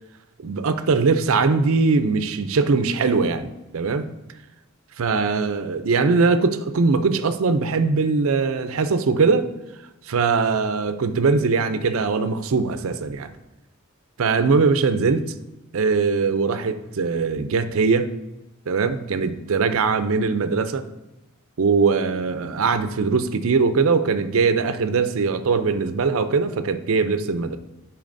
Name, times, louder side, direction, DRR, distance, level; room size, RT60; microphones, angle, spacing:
voice 1, 0.4-4.1 5.0-9.5 10.0-13.3 14.2-15.3 15.7-18.1 18.7-20.9 21.6-27.6, right 4 dB, 65° right, 11 dB, 0.5 m, -21 dB
10.5 x 4.5 x 2.6 m, 1.0 s
head